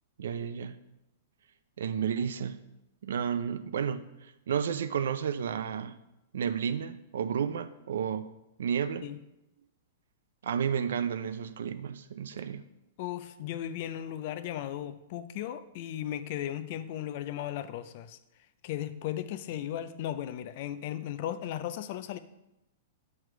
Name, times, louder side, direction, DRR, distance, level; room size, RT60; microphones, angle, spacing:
voice 1, 0.2-0.8 1.8-2.6 3.0-4.1 4.5-6.0 6.3-8.3 8.6-9.1 10.4-12.6, right 7 dB, 75° right, 12 dB, 0.4 m, -31 dB
voice 2, 13.0-18.2 18.6-22.2, left 11 dB, 40° left, 12 dB, 0.3 m, -36 dB
7.7 x 3.2 x 4.6 m, 0.90 s
supercardioid pair, 170°, 0 cm